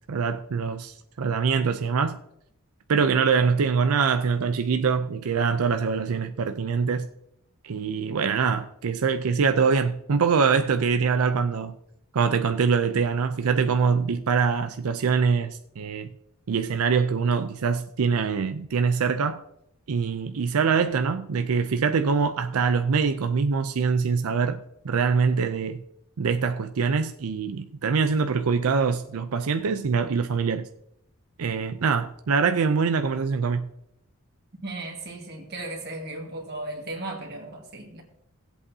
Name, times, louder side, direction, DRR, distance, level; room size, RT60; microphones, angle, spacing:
voice 1, 0.1-2.2 2.9-7.1 7.6-11.7 12.1-16.1 16.5-19.4 19.9-25.8 26.2-30.7 31.4-33.7, right 5 dB, 90° right, 0.5 m, -24 dB
voice 2, 34.6-38.0, right 2 dB, 50° right, 1.8 m, -36 dB
17.5 x 8.1 x 2.7 m
head